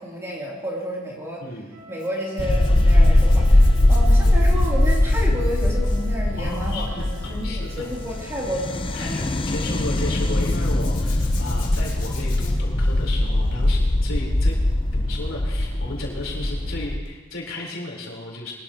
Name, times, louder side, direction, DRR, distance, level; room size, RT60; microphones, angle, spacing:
voice 1, 0.0-1.5 1.9-9.3, equal, 15° right, -4 dB, 3.1 m, -31 dB
voice 2, 1.4-1.8 6.4-7.8 8.9-14.6 14.9-18.5, left 2 dB, 80° left, -3 dB, 4.1 m, -34 dB
Wind instrument woodwind instrument, 1.7-10.6, left 1 dB, 65° right, 5.6 m, -46 dB
Zipper (clothing), 2.0-9.4 10.3-14.0 14.4-14.7 17.0-17.2 17.5-17.6, left 6 dB, 40° left, 2.6 m, -45 dB
sound 1, 2.4-17.0, left 1 dB, 25° left, 0.6 m, -20 dB
22.5 x 13.0 x 3.0 m, 1.2 s
head